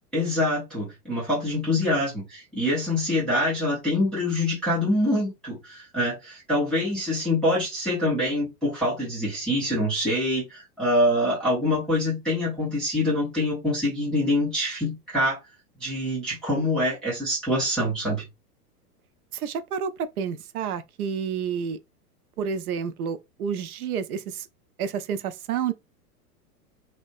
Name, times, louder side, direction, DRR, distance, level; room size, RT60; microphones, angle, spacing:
voice 1, 0.1-15.4 15.8-18.2, left 1 dB, ahead, 0.3 m, -25 dB
voice 2, 19.3-21.8 22.4-24.5 24.8-25.7, right 7 dB, 70° right, 0.5 m, -29 dB
2.7 x 2.2 x 2.4 m
figure-of-eight pair, 100°, 47 cm